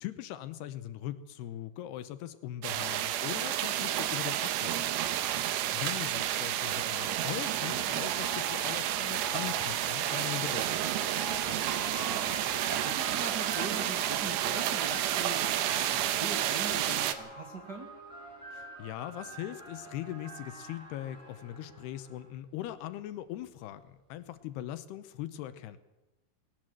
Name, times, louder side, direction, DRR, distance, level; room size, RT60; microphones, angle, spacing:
voice 1, 0.0-4.9 5.5-11.0 18.5-25.8, left 13 dB, 75° left, 12 dB, 2.8 m, -40 dB
sound 1, 2.6-17.2, right 12 dB, 90° right, 3.3 m, -31 dB
voice 2, 5.0-5.7 11.2-12.2 12.6-17.9, right 2 dB, 35° right, 1 dB, 1.8 m, -42 dB
sound 2, 6.7-22.3, right 1 dB, ahead, 7.4 m, -45 dB
19.5 x 18.5 x 7.7 m, 0.99 s
omnidirectional pair, 4.9 m